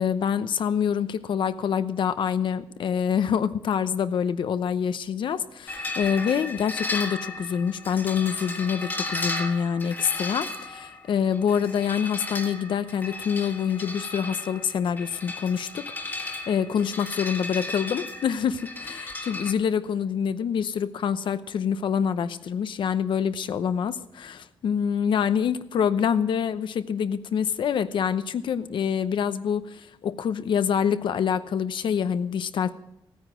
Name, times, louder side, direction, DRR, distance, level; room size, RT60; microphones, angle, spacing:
voice 1, 0.0-32.7, left 7 dB, 70° left, 12 dB, 0.8 m, -26 dB
sound 1, 5.7-19.5, left 2 dB, 25° left, 1.6 m, -35 dB
16.5 x 9.6 x 6.2 m, 0.84 s
wide cardioid pair, 140°, 9 cm